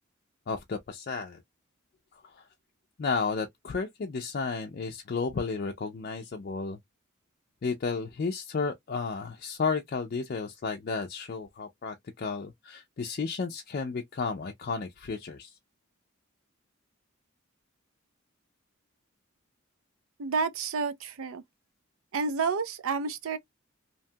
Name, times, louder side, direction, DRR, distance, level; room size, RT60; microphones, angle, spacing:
voice 1, 0.5-1.4 2.2-2.5 3.0-6.8 7.6-15.5, left 4 dB, 45° left, 0.4 m, -33 dB
voice 2, 20.2-21.4 22.1-23.4, right 5 dB, 80° right, 0.5 m, -30 dB
2.8 x 2.2 x 2.7 m
head